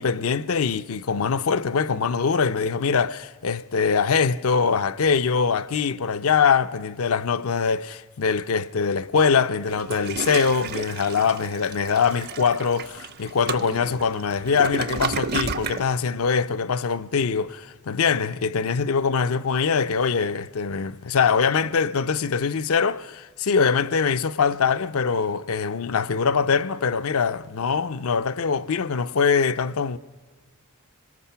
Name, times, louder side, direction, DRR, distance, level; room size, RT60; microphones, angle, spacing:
voice 1, 0.0-30.0, left 5 dB, 70° left, 0.6 m, -23 dB
Toilet flush, 9.7-15.9, right 5 dB, 45° right, 0.6 m, -32 dB
25.0 x 19.5 x 5.7 m
head